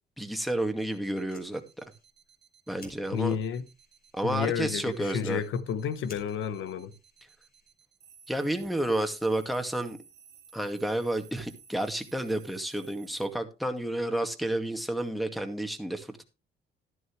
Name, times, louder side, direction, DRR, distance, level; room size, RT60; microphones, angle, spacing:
voice 1, 0.2-1.8 2.7-3.4 4.1-5.4 8.3-10.0 10.5-16.2, right 1 dB, ahead, 2.1 m, -31 dB
sound 1, 0.8-13.3, right 6 dB, 60° right, 2.0 m, -56 dB
Fire, 1.1-8.0, left 3 dB, 50° left, 5.2 m, -57 dB
voice 2, 3.1-3.7 4.2-6.9, left 7 dB, 80° left, 1.1 m, -31 dB
12.5 x 11.0 x 3.2 m
cardioid pair, 90°, 20 cm